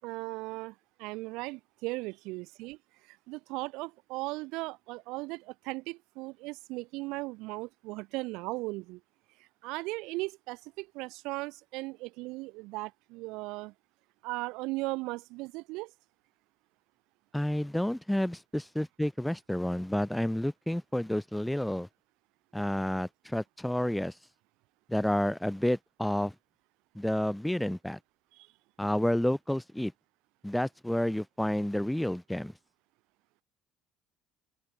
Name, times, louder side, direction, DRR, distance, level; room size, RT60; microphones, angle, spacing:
voice 1, 0.0-2.8 3.1-9.0 9.4-13.7 14.2-15.9 28.3-28.5, right 23 dB, 75° right, 5.2 m, -37 dB
voice 2, 17.3-21.9 22.5-24.1 24.9-26.3 26.9-28.0 28.8-29.9 30.4-32.5, left 1 dB, 5° left, 3.9 m, -30 dB
open air
supercardioid pair, 70°, 0 cm